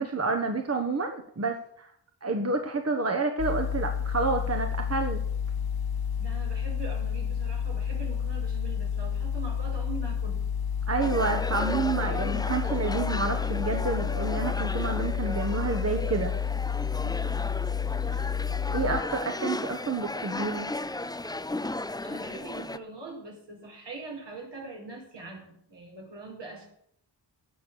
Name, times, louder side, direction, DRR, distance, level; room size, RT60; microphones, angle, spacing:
voice 1, 0.0-1.9 2.2-5.2 10.9-16.3 18.7-20.7, right 3 dB, 35° right, 4 dB, 1.3 m, -29 dB
sound 1, 3.4-19.0, left 7 dB, 55° left, 1.0 m, -30 dB
voice 2, 6.2-10.4 17.0-17.3 18.1-18.3 22.0-26.7, right 3 dB, 75° right, -1 dB, 5.4 m, -42 dB
sound 2, 11.0-22.8, left 2 dB, 10° left, 0.4 m, -35 dB
17.5 x 6.8 x 6.4 m, 0.69 s
wide cardioid pair, 95°, 43 cm